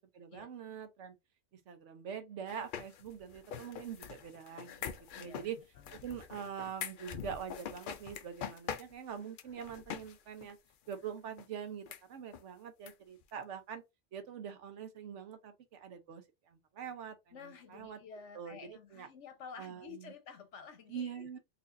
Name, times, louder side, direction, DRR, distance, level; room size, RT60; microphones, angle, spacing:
voice 1, 0.1-1.1 1.5-5.6 5.9-10.6 10.9-13.8 14.1-18.0 18.3-19.1 19.6-20.1 20.9-21.4, right 8 dB, 85° right, 1.1 m, -44 dB
sound 1, 2.5-10.2 10.4-10.5 10.9-11.0 11.4-11.5 11.9-12.0 12.3-12.4 12.9-13.0 13.2-13.3, left 8 dB, 60° left, 0.6 m, -44 dB
voice 2, 5.1-5.5 5.8-6.0 17.3-21.4, left 6 dB, 80° left, 1.2 m, -51 dB
4.1 x 2.7 x 2.5 m
omnidirectional pair, 1.2 m